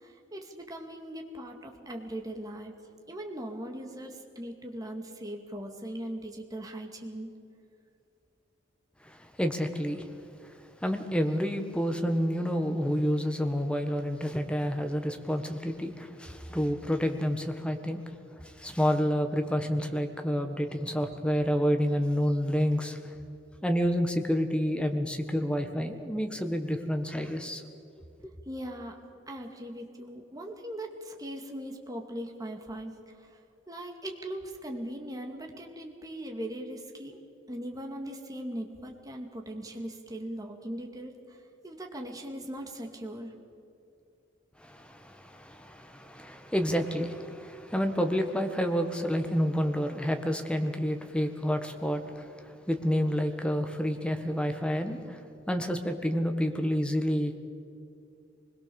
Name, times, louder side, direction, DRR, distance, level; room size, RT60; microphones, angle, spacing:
voice 1, 0.0-2.7 3.1-7.3 28.5-29.0 29.3-33.4 33.7-37.2 37.5-41.4 41.6-43.3, right 1 dB, 20° right, 2 dB, 2.3 m, -39 dB
voice 2, 9.0-10.1 10.8-18.0 18.4-23.1 23.6-27.6 44.6-55.2 55.5-57.4, equal, 5° left, 6 dB, 1.6 m, -29 dB
24.5 x 21.5 x 7.1 m, 2.5 s
head